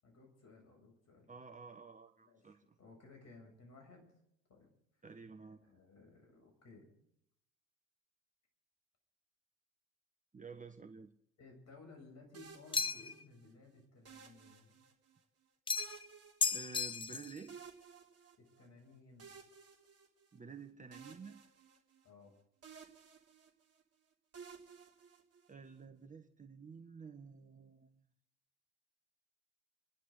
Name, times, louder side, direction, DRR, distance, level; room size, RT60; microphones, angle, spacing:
voice 1, 0.0-1.3 2.2-4.2 4.5-4.7 5.0-5.1 5.6-6.9 11.4-14.8 18.6-19.4 22.0-22.3, left 3 dB, 40° left, 3 dB, 7.4 m, -59 dB
voice 2, 1.3-2.8 5.0-5.6 10.3-11.1 16.5-17.6 20.3-21.4 25.5-28.1, right 5 dB, 20° right, 6 dB, 1.3 m, -51 dB
sound 1, 12.3-13.5 14.1-15.2 15.8-17.1 17.5-18.7 19.2-20.6 20.9-22.3 22.6-23.8 24.3-25.7, right 6 dB, 35° right, 3.1 m, -56 dB
sound 2, 12.7-13.2 15.7-16.1 16.4-17.4, left 5 dB, 15° left, 0.5 m, -35 dB
29.5 x 11.0 x 3.9 m, 0.73 s
figure-of-eight pair, 65°, 39 cm